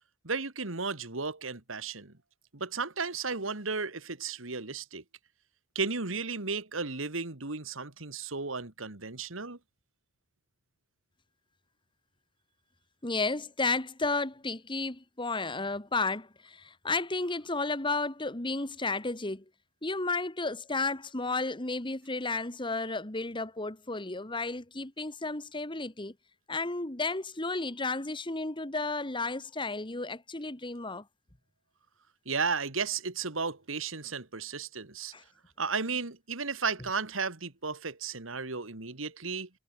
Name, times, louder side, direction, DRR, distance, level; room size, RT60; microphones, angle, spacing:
voice 1, 0.2-2.1 2.5-5.0 5.7-9.6 32.3-35.1 35.6-39.5, right 4 dB, 90° right, 2.4 m, -34 dB
voice 2, 13.0-19.4 19.8-26.1 26.5-31.0 35.1-35.2, left 3 dB, 25° left, 1.8 m, -32 dB
head